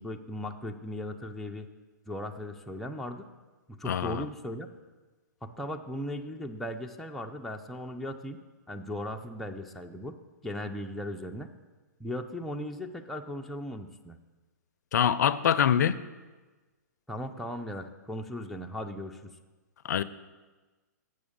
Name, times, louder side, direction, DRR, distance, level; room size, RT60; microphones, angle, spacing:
voice 1, 0.0-1.7 2.1-3.3 3.8-4.7 5.4-8.4 8.7-10.2 10.4-11.5 12.0-14.2 17.1-19.3, left 1 dB, ahead, 0.4 m, -37 dB
voice 2, 3.9-4.3 14.9-16.0 19.8-20.0, left 9 dB, 70° left, 0.4 m, -24 dB
6.5 x 6.0 x 7.1 m
hypercardioid pair, 135°, 10 cm